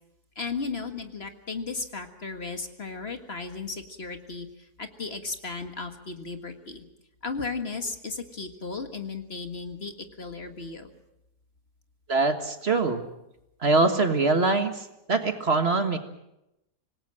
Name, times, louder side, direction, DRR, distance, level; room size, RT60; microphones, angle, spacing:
voice 1, 0.4-6.9 7.2-10.9, left 4 dB, 40° left, 6 dB, 1.8 m, -35 dB
voice 2, 12.1-13.1 13.6-16.0, right 3 dB, 45° right, 7 dB, 1.8 m, -23 dB
26.0 x 19.0 x 7.5 m, 0.86 s
omnidirectional pair, 1.6 m